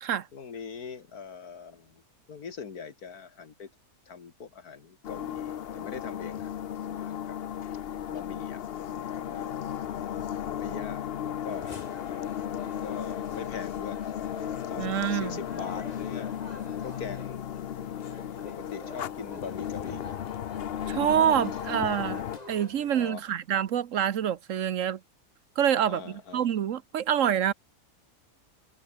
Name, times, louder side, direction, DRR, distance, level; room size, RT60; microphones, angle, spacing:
voice 1, 0.3-2.0 2.3-3.7 4.1-6.5 6.8-7.4 8.1-9.6 10.6-11.8 12.6-14.0 14.7-17.4 18.4-20.2 23.0-23.2 25.9-26.5, left 6 dB, 90° left, 2.4 m, -42 dB
sound 1, 5.0-22.4, left 10 dB, 55° left, 0.7 m, -35 dB
sound 2, 11.5-23.1, left 2 dB, 25° left, 2.7 m, -47 dB
voice 2, 14.8-15.4 20.9-25.0 25.6-27.5, right 9 dB, 65° right, 1.1 m, -26 dB
omnidirectional pair, 1.5 m